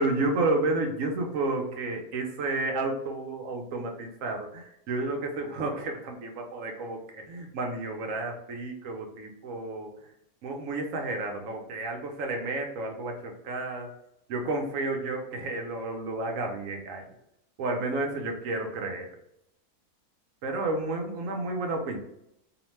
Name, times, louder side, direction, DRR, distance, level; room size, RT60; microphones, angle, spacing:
voice 1, 0.0-9.9 10.4-13.9 14.3-17.1 17.6-19.1 20.4-22.0, right 2 dB, 70° right, 2 dB, 0.9 m, -31 dB
2.8 x 2.1 x 3.0 m, 0.80 s
omnidirectional pair, 1.5 m